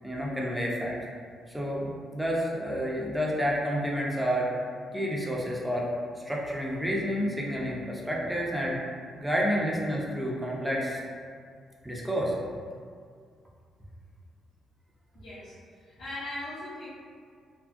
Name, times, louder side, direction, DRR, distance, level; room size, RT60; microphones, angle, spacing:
voice 1, 0.0-1.0 1.5-4.5 4.9-8.8 9.2-11.0 11.8-12.4, equal, 5° right, -4 dB, 0.5 m, -29 dB
voice 2, 15.1-15.5 15.8-16.9, left 1 dB, 80° left, -13 dB, 0.7 m, -39 dB
2.7 x 2.5 x 2.5 m, 2.1 s
cardioid pair, 90°, 0 cm